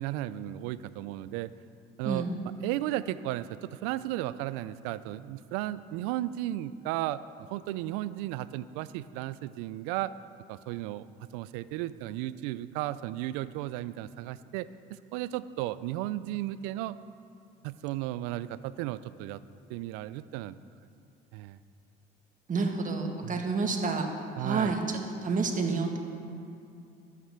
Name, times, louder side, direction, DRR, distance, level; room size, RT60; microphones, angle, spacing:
voice 1, 0.0-1.5 2.0-2.2 2.6-7.2 7.5-10.1 10.5-11.1 11.3-17.0 17.6-19.4 19.7-20.6 21.3-21.6 23.2-23.4 24.4-24.8, right 15 dB, 85° right, 16 dB, 0.4 m, -34 dB
voice 2, 22.5-24.1 24.4-26.0, right 4 dB, 40° right, 3 dB, 1.8 m, -29 dB
11.0 x 9.4 x 6.8 m, 2.6 s
supercardioid pair, 80°, 21 cm